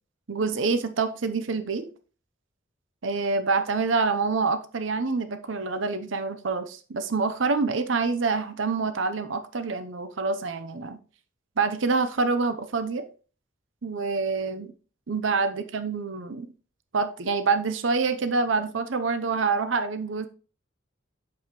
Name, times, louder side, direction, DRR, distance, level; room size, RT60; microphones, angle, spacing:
voice 1, 0.3-1.9 3.0-11.0 11.6-13.0 13.8-14.7 15.1-16.5 16.9-20.3, right 4 dB, 70° right, 10 dB, 0.7 m, -26 dB
8.3 x 6.9 x 3.0 m, 0.37 s
head